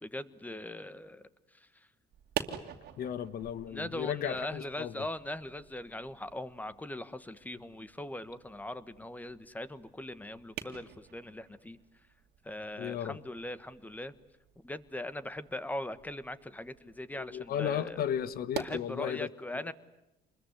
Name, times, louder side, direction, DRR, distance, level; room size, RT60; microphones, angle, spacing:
voice 1, 0.0-1.2 1.5-1.7 3.7-11.8 12.4-14.1 14.6-18.0 18.6-19.7, left 1 dB, 10° left, 1.4 m, -40 dB
sound 1, 2.1-18.8, right 10 dB, 75° right, 2.5 m, -47 dB
voice 2, 3.0-5.1 12.8-13.2 17.3-19.3 19.6-19.7, left 9 dB, 65° left, 1.4 m, -35 dB
27.5 x 22.0 x 9.6 m
cardioid pair, 110°, 17 cm